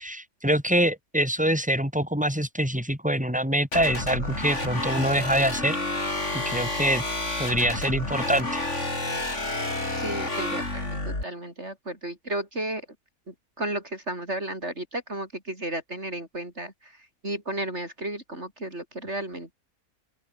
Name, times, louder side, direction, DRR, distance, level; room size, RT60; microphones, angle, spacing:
voice 1, 0.0-5.8 6.3-7.0 7.4-8.6, right 1 dB, 5° right, 7.7 m, -25 dB
sound 1, 3.7-11.2, left 2 dB, 55° left, 6.1 m, -30 dB
voice 2, 10.0-12.9 13.3-19.5, right 1 dB, 50° right, 6.5 m, -33 dB
open air
omnidirectional pair, 1.5 m